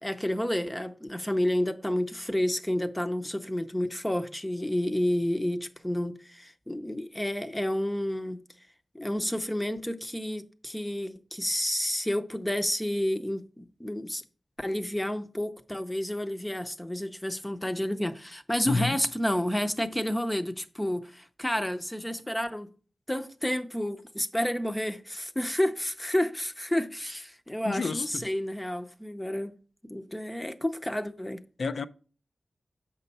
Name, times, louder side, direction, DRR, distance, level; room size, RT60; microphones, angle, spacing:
voice 1, 0.0-8.4 8.9-14.2 14.6-22.7 23.1-29.5 29.9-31.4, left 1 dB, 10° left, 0.6 m, -30 dB
voice 2, 27.6-28.2 31.6-31.9, left 4 dB, 70° left, 0.5 m, -29 dB
7.6 x 5.4 x 4.1 m
wide cardioid pair, 120°, 0 cm